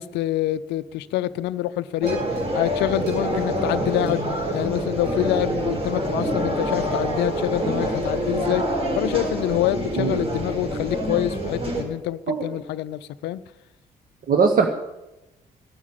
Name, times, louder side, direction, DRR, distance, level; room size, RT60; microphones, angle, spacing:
voice 1, 0.0-2.2 2.5-4.2 4.5-8.7 9.0-13.4, left 14 dB, 60° left, 14 dB, 0.5 m, -26 dB
sound 1, 2.0-11.8, equal, 30° right, 4.0 m, -26 dB
sound 2, 2.1-6.4 7.1-7.2, right 5 dB, 80° right, 4.7 m, -43 dB
voice 2, 10.0-10.3 12.3-12.5 14.3-14.7, right 5 dB, 45° right, 5 dB, 1.2 m, -20 dB
14.0 x 12.0 x 7.2 m, 0.97 s
figure-of-eight pair, 45°, 21 cm